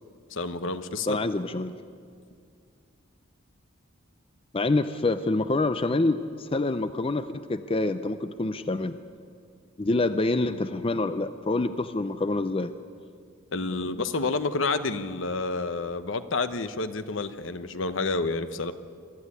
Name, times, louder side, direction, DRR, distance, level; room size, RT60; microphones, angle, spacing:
voice 1, 0.3-1.2 13.5-18.7, left 3 dB, 65° left, 11 dB, 1.0 m, -29 dB
voice 2, 1.1-1.8 4.5-9.0 9.8-12.7, left 2 dB, 25° left, 11 dB, 0.5 m, -26 dB
23.0 x 14.0 x 9.8 m, 2.3 s
head